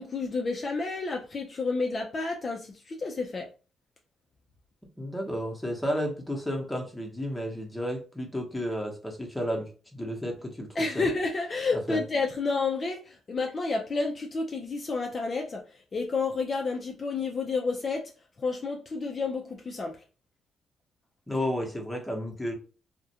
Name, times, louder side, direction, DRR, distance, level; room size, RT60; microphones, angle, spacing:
voice 1, 0.0-3.5 10.8-18.1 18.4-20.0, left 3 dB, 35° left, 0.4 m, -30 dB
voice 2, 5.0-10.7 10.9-11.1 11.9-12.0 21.3-22.5, equal, 10° left, 0.8 m, -32 dB
2.4 x 2.1 x 2.7 m
cardioid pair, 90°, 0 cm